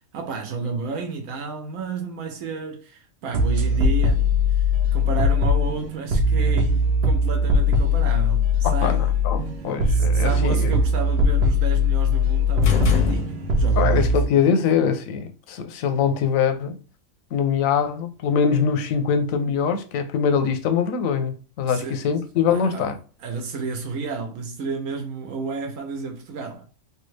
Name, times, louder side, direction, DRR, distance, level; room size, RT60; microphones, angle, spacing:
voice 1, 0.1-9.0 9.9-14.2 21.7-22.1 22.5-22.9 23.2-26.7, right 4 dB, 85° right, 1.2 m, -31 dB
sound 1, 3.3-14.2, left 2 dB, 60° right, 0.8 m, -20 dB
voice 2, 8.6-10.7 13.8-16.8 17.3-23.0, left 7 dB, 85° left, 1.0 m, -23 dB
sound 2, 12.6-13.9, left 5 dB, 65° left, 0.4 m, -24 dB
3.3 x 2.3 x 3.1 m
omnidirectional pair, 1.4 m